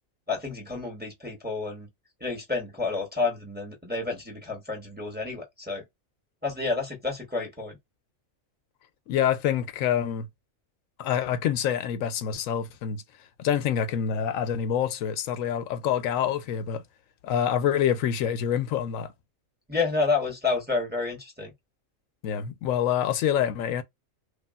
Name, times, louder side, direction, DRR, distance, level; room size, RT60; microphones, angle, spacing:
voice 1, 0.3-1.9 2.2-5.8 6.4-7.8 19.7-21.5, left 4 dB, 10° right, 0.9 m, -29 dB
voice 2, 9.1-10.3 11.0-13.0 13.4-16.8 17.2-19.1 22.2-23.8, left 9 dB, 80° left, 1.0 m, -26 dB
3.3 x 2.4 x 2.3 m
omnidirectional pair, 1.4 m